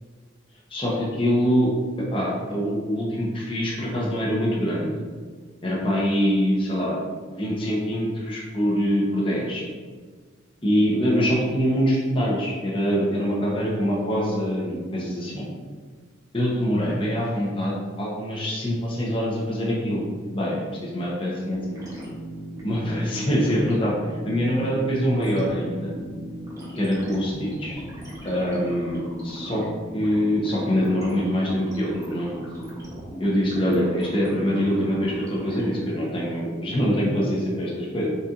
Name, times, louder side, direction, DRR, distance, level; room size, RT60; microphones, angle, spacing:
voice 1, 0.7-4.9 5.6-7.0 7.3-9.6 10.6-15.5 16.3-20.0 20.3-21.8 22.6-25.9 26.7-27.8 28.2-29.6 29.9-32.4 33.2-38.2, equal, 25° left, -5 dB, 0.8 m, -24 dB
sound 1, 21.5-35.7, equal, 15° right, 1.0 m, -37 dB
4.1 x 4.1 x 2.5 m, 1.5 s
head